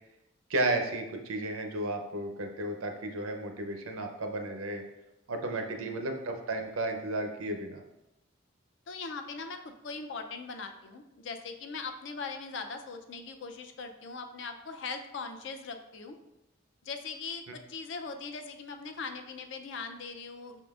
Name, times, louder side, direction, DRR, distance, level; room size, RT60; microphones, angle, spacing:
voice 1, 0.5-4.8 5.3-7.8, right 2 dB, 90° right, 5 dB, 0.7 m, -33 dB
voice 2, 5.5-6.0 8.9-16.2 16.8-20.6, left 4 dB, 60° left, 6 dB, 0.4 m, -40 dB
5.9 x 3.7 x 2.4 m, 0.94 s
head